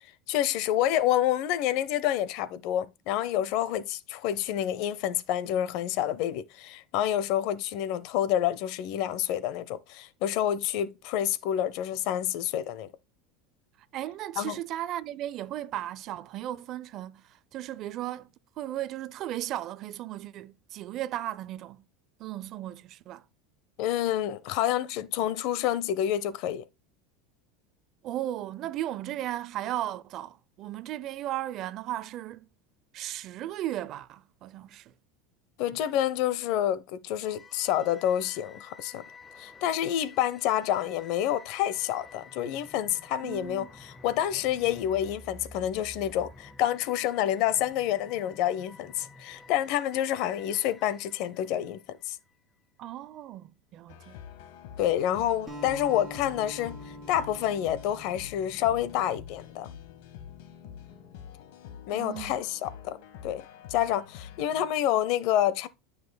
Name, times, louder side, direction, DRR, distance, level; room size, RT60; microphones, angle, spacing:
voice 1, 0.3-12.9 14.4-14.6 23.8-26.6 35.6-39.0 39.4-52.2 54.8-59.7 61.9-63.0 63.2-63.4 63.7-65.7, left 11 dB, 55° left, 0.7 m, -28 dB
voice 2, 13.9-18.3 18.6-21.9 22.2-23.2 28.0-32.5 32.9-34.9 43.2-43.7 52.8-54.2 61.9-62.3, right 13 dB, 40° right, 0.5 m, -36 dB
sound 1, 37.2-52.4, left 3 dB, 10° left, 0.7 m, -51 dB
sound 2, 53.9-64.7, left 9 dB, 75° left, 1.5 m, -47 dB
Acoustic guitar, 55.5-59.9, equal, 10° right, 4.1 m, -45 dB
13.0 x 5.6 x 2.2 m
supercardioid pair, 140°, 0 cm